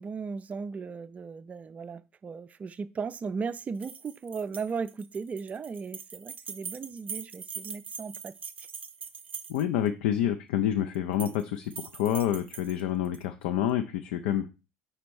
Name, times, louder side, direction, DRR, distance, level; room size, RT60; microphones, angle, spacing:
voice 1, 0.0-8.5, right 5 dB, 25° right, 0.4 m, -36 dB
sound 1, 3.8-9.9 10.9-11.4 11.7-13.2, right 6 dB, 90° right, 0.4 m, -42 dB
voice 2, 9.5-14.5, left 10 dB, 65° left, 0.5 m, -28 dB
5.1 x 4.2 x 4.6 m
hypercardioid pair, 70°, 6 cm